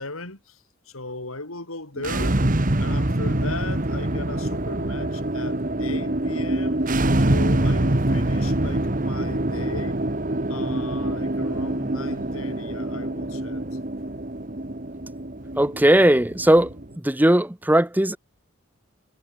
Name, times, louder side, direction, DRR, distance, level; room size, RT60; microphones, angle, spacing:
voice 1, 0.0-2.4 2.8-6.9 7.2-10.0 10.5-13.8, left 2 dB, 85° left, 5.5 m, -37 dB
sound 1, 2.0-16.9, right 1 dB, 40° right, 1.6 m, -25 dB
voice 2, 15.6-16.7 17.0-18.2, right 1 dB, 10° right, 0.7 m, -18 dB
head